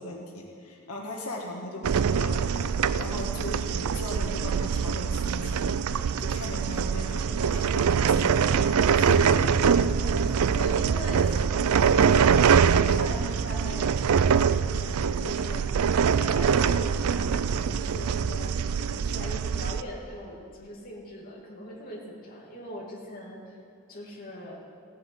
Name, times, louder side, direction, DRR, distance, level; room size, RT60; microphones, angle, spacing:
voice 1, 0.0-2.4 3.0-5.9 6.2-9.5 10.2-10.3, left 1 dB, 90° left, -1 dB, 1.6 m, -38 dB
voice 2, 1.6-2.0 3.8-4.1 10.0-12.0 12.7-15.7 16.2-23.6 23.9-24.6, left 1 dB, 40° left, -3 dB, 2.6 m, -41 dB
sound 1, 1.8-19.8, right 6 dB, 75° right, 0.4 m, -24 dB
16.0 x 7.4 x 7.9 m, 2.3 s
head